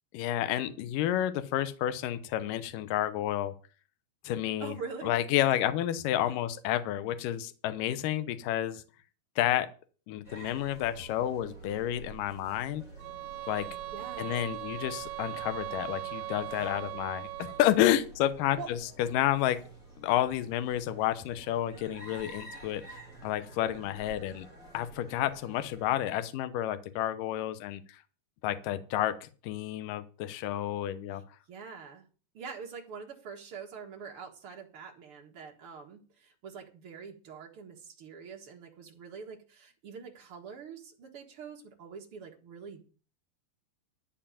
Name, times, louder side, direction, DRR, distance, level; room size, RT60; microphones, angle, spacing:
voice 1, 0.1-3.5 4.2-4.7 5.0-8.8 9.4-9.7 10.1-12.8 13.5-13.7 14.2-19.6 20.0-24.5 24.7-27.8 28.4-31.2, left 12 dB, 75° left, 11 dB, 2.1 m, -30 dB
voice 2, 4.6-5.2 6.2-6.4 13.9-14.4 18.5-18.7 31.1-31.2 31.5-32.1 32.3-42.9, right 6 dB, 55° right, 1 dB, 1.6 m, -45 dB
sound 1, 10.2-25.9, right 3 dB, 25° left, 2.2 m, -50 dB
sound 2, 13.0-17.8, right 17 dB, 85° right, 3.2 m, -39 dB
13.0 x 4.6 x 8.8 m, 0.37 s
omnidirectional pair, 5.1 m